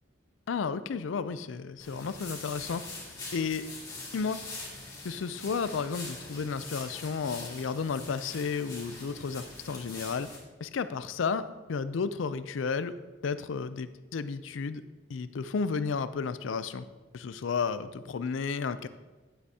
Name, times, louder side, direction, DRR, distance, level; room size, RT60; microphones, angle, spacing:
voice 1, 0.5-2.8 3.3-3.6 4.1-4.4 5.0-10.3 10.6-12.9 13.2-14.8 15.1-16.8 17.1-18.9, left 5 dB, 90° left, 13 dB, 0.4 m, -32 dB
sound 1, 1.8-10.4, left 2 dB, 20° left, 2.4 m, -43 dB
10.0 x 8.0 x 2.8 m, 1.2 s
head